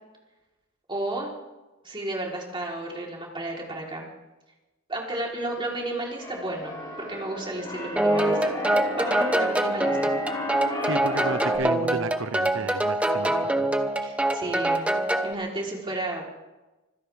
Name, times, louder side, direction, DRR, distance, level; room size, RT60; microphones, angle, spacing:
voice 1, 0.9-1.3 1.8-4.1 4.9-6.8 7.1-10.1 14.0-14.9 15.2-16.2, right 1 dB, 25° right, -2 dB, 3.8 m, -33 dB
Keyboard (musical), 5.7-11.6, left 1 dB, 20° left, 6.9 m, -34 dB
sound 1, 8.0-15.3, right 1 dB, 5° right, 1.1 m, -24 dB
voice 2, 10.9-13.7, right 3 dB, 65° right, 12 dB, 0.9 m, -33 dB
25.5 x 15.5 x 3.5 m, 1.1 s
head